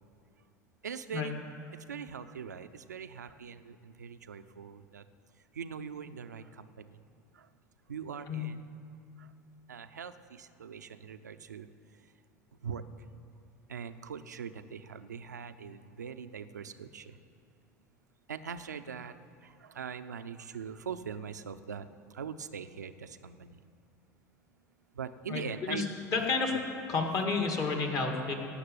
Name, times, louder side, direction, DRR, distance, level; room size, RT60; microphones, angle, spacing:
voice 1, 0.8-1.3 1.9-5.0 5.6-6.8 7.9-8.6 9.7-11.7 12.6-12.8 13.7-17.2 18.3-19.1 19.6-21.9 22.1-23.5 25.0-25.9, right 7 dB, 85° right, 10 dB, 0.6 m, -42 dB
voice 2, 25.3-25.8 26.1-26.5 26.9-28.3, left 4 dB, 40° left, 2 dB, 2.3 m, -30 dB
17.0 x 6.6 x 9.3 m, 2.4 s
figure-of-eight pair, 75°, 9 cm